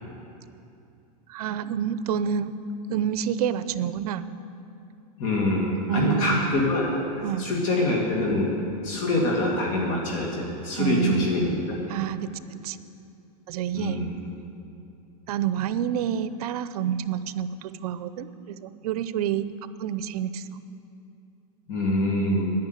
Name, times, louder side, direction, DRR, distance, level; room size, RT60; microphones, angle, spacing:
voice 1, 1.3-2.5 2.9-4.3 5.9-6.5 7.2-7.6 10.8-11.3 11.9-12.8 13.5-14.0 15.3-19.5 19.8-20.5, right 9 dB, 70° right, 13 dB, 0.7 m, -28 dB
voice 2, 5.2-6.9 7.4-8.5 8.8-11.5 13.7-14.1 21.7-22.5, left 2 dB, 40° left, -2 dB, 2.3 m, -25 dB
10.5 x 10.0 x 8.2 m, 2.6 s
supercardioid pair, 150°, 20 cm